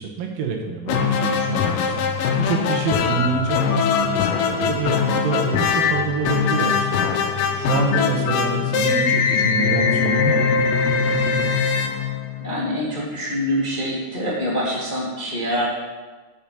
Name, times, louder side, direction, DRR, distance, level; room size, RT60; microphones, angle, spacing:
voice 1, 0.0-2.0 2.4-10.5, right 5 dB, 70° right, 1 dB, 2.7 m, -26 dB
sound 1, 0.9-12.7, left 6 dB, 75° left, 2.3 m, -21 dB
voice 2, 7.6-8.1 12.0-12.1 12.4-15.6, equal, 20° left, -6 dB, 1.5 m, -26 dB
9.0 x 6.8 x 7.3 m, 1.3 s
omnidirectional pair, 4.4 m